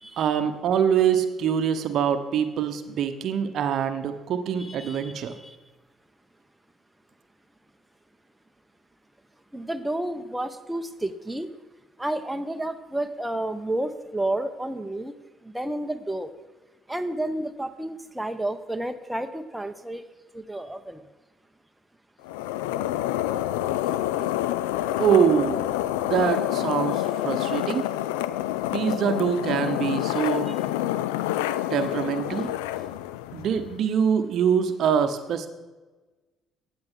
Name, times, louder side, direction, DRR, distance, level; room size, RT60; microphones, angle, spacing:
voice 1, 0.2-5.3 25.0-25.6 26.0-27.9 28.7-30.5 31.7-32.5 33.3-35.5, right 8 dB, 60° right, 9 dB, 0.9 m, -24 dB
voice 2, 4.6-5.6 9.5-11.5 12.0-15.1 15.4-16.3 16.9-20.0 20.3-21.0, right 1 dB, 10° right, 7 dB, 0.9 m, -31 dB
sound 1, 22.2-33.8, left 13 dB, 75° left, 0.4 m, -27 dB
16.5 x 8.7 x 3.8 m, 1.2 s
hypercardioid pair, 50°, 0 cm